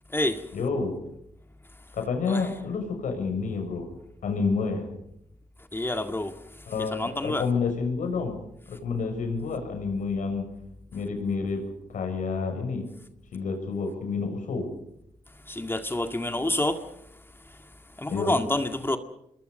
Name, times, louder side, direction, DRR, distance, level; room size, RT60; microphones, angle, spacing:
voice 1, 0.5-1.0 1.9-3.9 4.2-4.9 6.7-8.4 8.7-10.5 10.9-11.6 11.9-12.9 13.3-14.7 18.1-18.4, left 4 dB, 75° left, 6.9 m, -29 dB
voice 2, 5.7-6.3 6.9-7.4 15.5-16.8 18.0-19.0, left 1 dB, 15° left, 1.9 m, -27 dB
27.5 x 22.0 x 5.5 m
cardioid pair, 70°, 13 cm